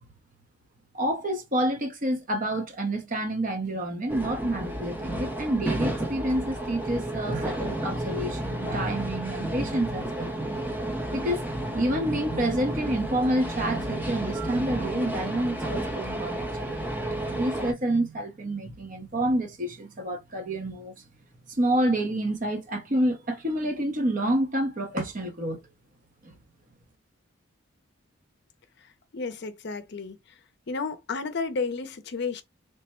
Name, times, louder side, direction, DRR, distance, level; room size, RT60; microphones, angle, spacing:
voice 1, 0.9-10.3 11.1-11.4 11.7-16.8 17.3-21.0 21.5-25.6 26.2-26.3, right 1 dB, 40° right, 0.8 m, -28 dB
sound 1, 4.1-17.7, right 1 dB, 10° right, 0.5 m, -32 dB
voice 2, 29.1-30.2 30.7-32.4, left 4 dB, 55° left, 0.5 m, -32 dB
3.3 x 2.1 x 4.2 m
head